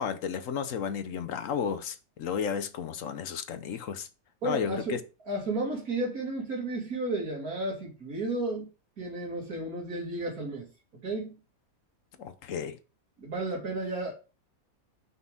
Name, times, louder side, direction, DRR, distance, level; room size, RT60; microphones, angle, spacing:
voice 1, 0.0-4.1 4.4-5.0 12.2-12.8, left 7 dB, 65° left, 1.0 m, -33 dB
voice 2, 4.4-5.0 5.3-8.7 9.0-10.7 11.0-11.4 13.2-14.1, right 2 dB, 80° right, 2.9 m, -32 dB
5.9 x 5.7 x 3.5 m
omnidirectional pair, 1.5 m